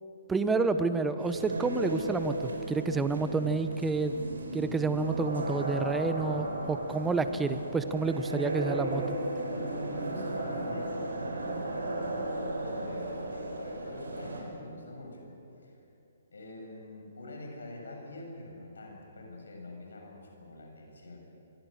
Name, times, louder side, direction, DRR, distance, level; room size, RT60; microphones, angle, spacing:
voice 1, 0.3-4.2 4.5-9.1, right 3 dB, 10° right, 10 dB, 1.1 m, -29 dB
sound 1, 1.2-14.4, right 2 dB, 80° right, 5.4 m, -35 dB
voice 2, 9.5-15.3 15.6-15.7 16.3-21.2, left 2 dB, 75° left, 1 dB, 7.2 m, -45 dB
25.0 x 23.0 x 6.7 m, 2.9 s
figure-of-eight pair, 135°, 0 cm